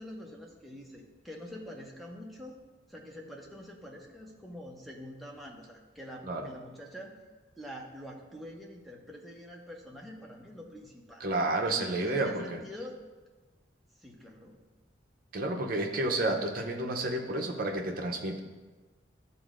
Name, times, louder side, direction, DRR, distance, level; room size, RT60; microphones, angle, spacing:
voice 1, 0.0-2.6 2.9-7.1 7.6-11.2 11.9-13.0 14.0-14.6, equal, ahead, -1 dB, 0.7 m, -45 dB
voice 2, 11.2-12.6 15.3-18.4, right 2 dB, 50° right, 2 dB, 0.6 m, -30 dB
10.5 x 4.1 x 2.5 m, 1.3 s
head